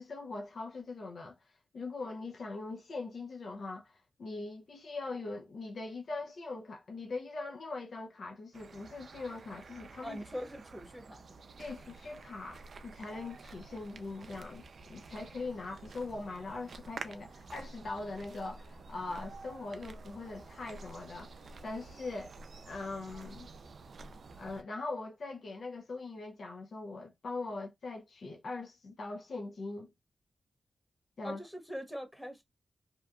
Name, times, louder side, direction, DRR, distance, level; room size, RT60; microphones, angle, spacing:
voice 1, 0.0-10.2 11.6-22.3 22.6-23.5 24.4-29.9 31.2-31.4, left 3 dB, 70° left, 0.4 m, -41 dB
sound 1, 8.5-24.6, right 3 dB, 70° right, 0.3 m, -50 dB
voice 2, 10.0-11.5 31.2-32.4, equal, 5° left, 0.9 m, -42 dB
2.7 x 2.2 x 2.3 m
cardioid pair, 60°, 0 cm